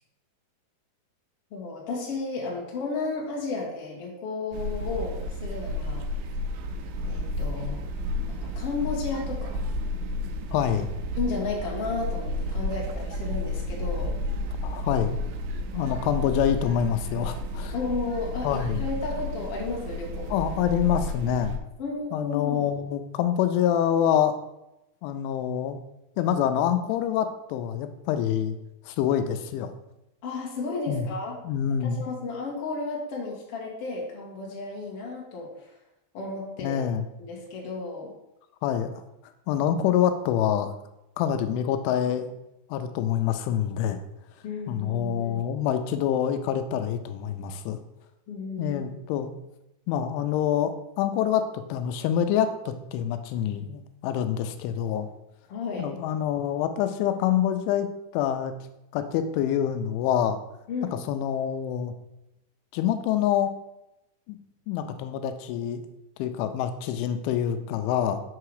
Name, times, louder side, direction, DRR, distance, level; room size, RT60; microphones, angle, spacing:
voice 1, 1.5-6.1 7.0-7.8 8.3-9.6 11.2-14.2 15.9-16.1 17.7-20.3 21.8-22.7 30.2-31.4 31.8-35.7 36.1-36.8 37.2-38.1 44.4-45.5 48.3-49.0 55.5-55.9 60.7-61.0, left 3 dB, 55° left, -2 dB, 1.7 m, -33 dB
sound 1, 4.5-21.6, left 1 dB, 80° right, 2.5 m, -32 dB
voice 2, 10.5-10.9 14.6-15.2 15.7-17.7 18.4-18.9 20.3-21.5 22.1-24.4 25.0-25.8 26.2-28.6 28.9-29.7 30.9-31.0 31.4-32.0 36.6-37.1 38.6-38.9 39.5-40.7 41.2-42.4 42.7-44.0 44.7-47.8 48.6-49.3 49.9-55.1 55.8-57.9 58.1-58.5 58.9-60.4 61.1-61.9 62.7-63.5 64.3-64.4 64.7-65.8 66.2-68.2, left 9 dB, 85° left, 9 dB, 3.0 m, -26 dB
7.0 x 5.7 x 4.8 m, 0.90 s
omnidirectional pair, 5.4 m